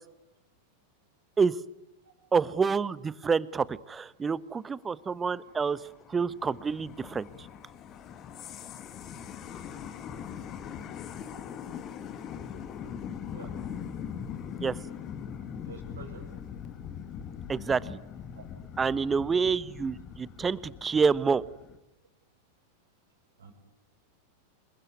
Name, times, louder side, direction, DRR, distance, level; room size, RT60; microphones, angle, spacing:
voice 1, 2.3-5.8 6.1-7.5 14.6-14.8 17.5-18.0 18.8-21.4, right 5 dB, 15° right, 19 dB, 1.0 m, -28 dB
sound 1, 5.2-21.8, left 8 dB, 30° left, 2.4 m, -41 dB
voice 2, 15.3-16.3 18.4-18.5 23.4-23.5, right 6 dB, 70° right, 6 dB, 5.8 m, -48 dB
28.5 x 22.0 x 9.5 m, 0.95 s
figure-of-eight pair, 90°, 0 cm